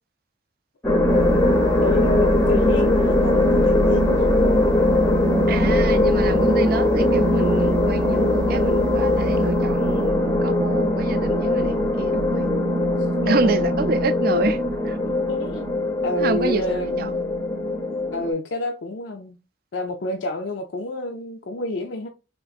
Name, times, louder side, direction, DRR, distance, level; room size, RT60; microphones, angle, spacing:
sound 1, 0.8-18.3, left 1 dB, 15° left, 0.6 m, -20 dB
sound 2, 1.0-9.7, equal, 90° right, 0.7 m, -31 dB
voice 1, 1.8-4.2 13.2-13.9 15.3-15.7 16.0-17.2 18.1-19.4 19.7-22.1, left 2 dB, 70° left, 0.5 m, -29 dB
voice 2, 5.5-12.5 13.2-15.0 16.2-17.2, right 3 dB, 50° right, 0.4 m, -27 dB
3.7 x 2.5 x 2.3 m
head